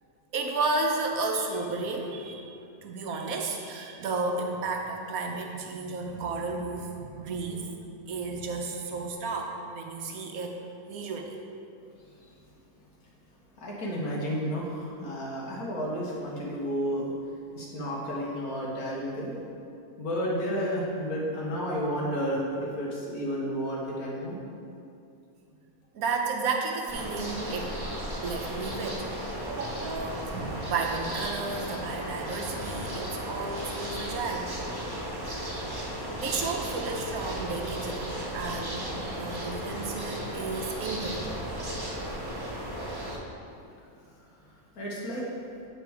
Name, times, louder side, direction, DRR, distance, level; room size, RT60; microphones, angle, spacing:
voice 1, 0.3-2.5 2.8-7.7 8.1-11.4 25.9-27.7 28.2-29.1 29.5-34.5 36.2-38.9 39.2-41.3, right 3 dB, 75° right, 2 dB, 1.1 m, -32 dB
voice 2, 13.6-17.1 17.6-19.4 20.0-24.4 44.8-45.3, equal, 90° left, -4 dB, 1.9 m, -31 dB
sound 1, 26.9-43.2, equal, 20° right, 0.9 m, -35 dB
8.6 x 4.2 x 4.6 m, 2.5 s
omnidirectional pair, 1.5 m